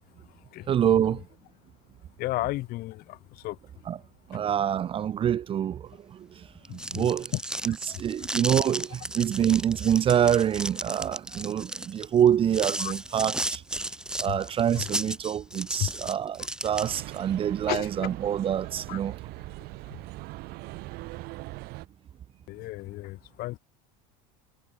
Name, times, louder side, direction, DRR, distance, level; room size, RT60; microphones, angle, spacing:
voice 1, 0.7-1.2 3.9-4.0 4.3-6.3 6.7-7.3 7.6-13.6 14.2-19.2, right 9 dB, 30° right, 0.9 m, -26 dB
voice 2, 2.2-3.6 6.8-7.0 7.3-7.4 7.7-8.0 12.8-12.9 14.2-14.4 14.8-14.9 15.8-15.9 17.7-18.1 18.9-19.0 22.5-23.6, left 19 dB, 55° left, 3.8 m, -33 dB
sound 1, 6.6-17.2, right 1 dB, 5° right, 5.9 m, -34 dB
sound 2, 16.8-21.9, right 22 dB, 60° right, 2.2 m, -40 dB
supercardioid pair, 125°, 18 cm